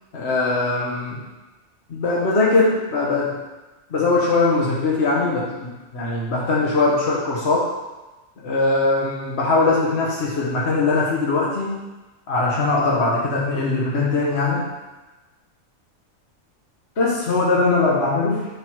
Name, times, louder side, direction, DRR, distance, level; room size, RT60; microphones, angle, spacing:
voice 1, 0.1-1.2 1.9-3.4 3.9-7.7 8.4-11.7 12.3-14.7 17.0-18.5, left 3 dB, 50° left, -5 dB, 1.4 m, -21 dB
9.9 x 3.8 x 4.6 m, 1.1 s
omnidirectional pair, 1.4 m